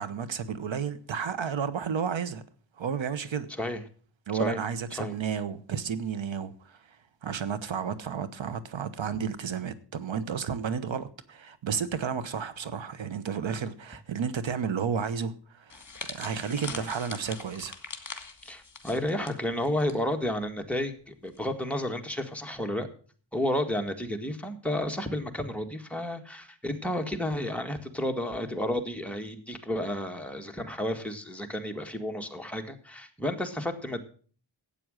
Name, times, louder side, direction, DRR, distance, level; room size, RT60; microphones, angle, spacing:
voice 1, 0.0-2.4 2.8-3.5 4.3-6.8 7.2-15.8 16.1-17.8, right 7 dB, 85° right, 1.1 m, -32 dB
sound 1, 15.7-20.0 20.2-20.5 21.3-21.6, left 4 dB, 40° left, 2.2 m, -42 dB
voice 2, 18.4-22.9 23.3-34.0, left 1 dB, 5° left, 1.7 m, -31 dB
12.5 x 8.8 x 6.4 m
wide cardioid pair, 100°, 45 cm